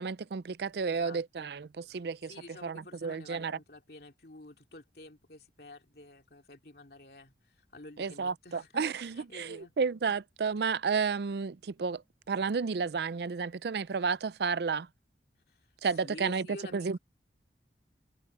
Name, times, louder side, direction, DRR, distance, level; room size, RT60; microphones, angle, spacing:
voice 1, 0.0-2.3 2.6-3.6 8.0-12.0 12.3-14.9 15.8-16.5 16.7-17.0, right 5 dB, 65° right, 0.4 m, -32 dB
voice 2, 0.9-1.5 2.3-9.7 15.5-15.7 16.0-17.0, left 2 dB, 60° left, 2.8 m, -50 dB
head